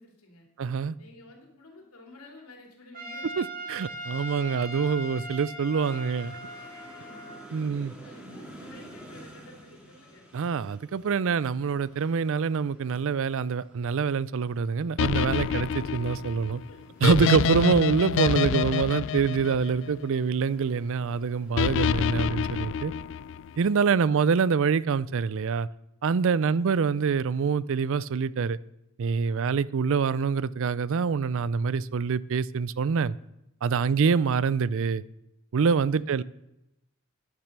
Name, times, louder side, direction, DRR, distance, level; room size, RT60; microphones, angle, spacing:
voice 1, 0.0-0.5 1.0-3.3 4.1-4.2 6.5-7.7 8.0-10.3 16.6-16.8 23.9-24.1 26.3-26.6 29.2-29.5 33.8-34.0 35.7-36.1, left 2 dB, 90° left, 2 dB, 3.0 m, -52 dB
voice 2, 0.6-1.0 3.4-6.4 7.5-7.9 10.3-16.6 17.0-22.9 23.6-25.7 26.0-28.6 29.0-33.2 33.6-35.0 35.5-36.2, right 5 dB, 65° right, 20 dB, 0.4 m, -25 dB
Trumpet, 2.9-7.5, right 1 dB, 40° right, 2.4 m, -39 dB
sound 1, 5.8-22.2, right 1 dB, 5° right, 2.2 m, -51 dB
sound 2, 15.0-20.3 21.6-23.5, left 7 dB, 60° left, 0.3 m, -27 dB
10.5 x 9.0 x 6.7 m, 0.86 s
head